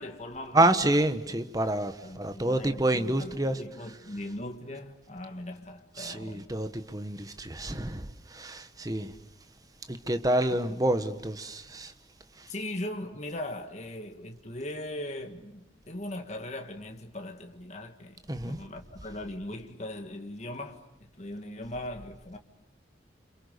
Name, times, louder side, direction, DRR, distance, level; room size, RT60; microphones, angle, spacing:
voice 1, 0.0-0.9 1.3-1.4 2.0-6.5 10.7-10.8 12.5-22.4, left 1 dB, 35° left, 1.9 m, -39 dB
voice 2, 0.5-3.6 6.0-9.1 9.9-11.9 12.4-12.5 18.3-18.6, right 1 dB, 20° right, 1.3 m, -28 dB
30.0 x 27.5 x 6.8 m
head